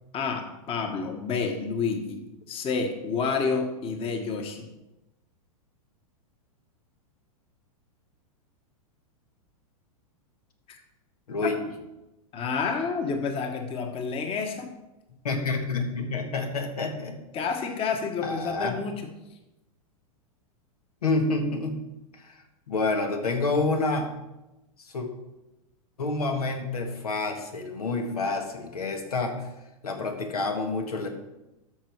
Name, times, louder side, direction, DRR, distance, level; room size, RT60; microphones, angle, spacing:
voice 1, 0.1-4.7 10.7-10.8 12.3-14.7 17.3-19.1, left 5 dB, 30° left, 6 dB, 1.4 m, -29 dB
voice 2, 15.2-17.2 18.2-18.8 21.0-21.8 22.1-24.1 24.9-25.1 26.0-29.4 29.8-31.1, left 3 dB, 85° left, 4 dB, 1.7 m, -28 dB
13.5 x 5.6 x 4.7 m, 0.98 s
hypercardioid pair, 120°, 19 cm